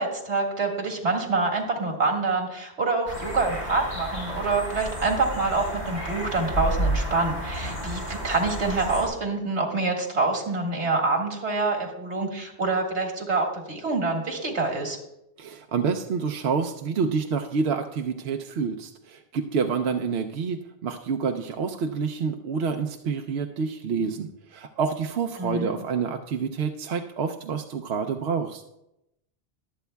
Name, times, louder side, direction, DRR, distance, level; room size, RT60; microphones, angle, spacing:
voice 1, 0.0-15.0 25.4-25.7, right 3 dB, 90° right, 0 dB, 2.1 m, -26 dB
sound 1, 3.1-9.1, right 1 dB, 75° left, 3.9 m, -31 dB
voice 2, 15.4-28.6, right 5 dB, 75° right, 5 dB, 0.9 m, -28 dB
23.0 x 8.2 x 2.2 m, 0.86 s
omnidirectional pair, 1.1 m